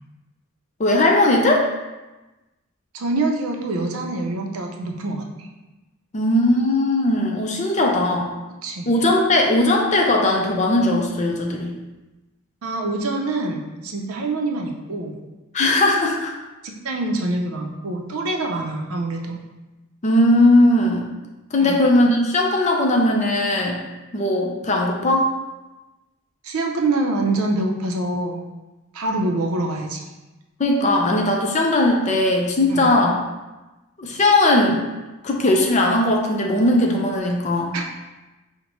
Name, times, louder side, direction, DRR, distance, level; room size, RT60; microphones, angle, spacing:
voice 1, 0.8-1.7 6.1-8.3 8.9-11.8 15.5-16.3 20.0-21.0 21.5-23.8 24.1-25.3 30.6-33.2 34.0-34.8 35.2-37.8, left 1 dB, 35° left, 1 dB, 0.5 m, -18 dB
voice 2, 2.9-5.5 8.6-8.9 12.6-15.1 16.6-19.4 21.6-21.8 26.4-28.4 28.9-30.1 32.7-32.9 37.7-37.9, right 2 dB, 80° right, 2 dB, 0.5 m, -25 dB
5.3 x 2.1 x 2.9 m, 1.1 s
head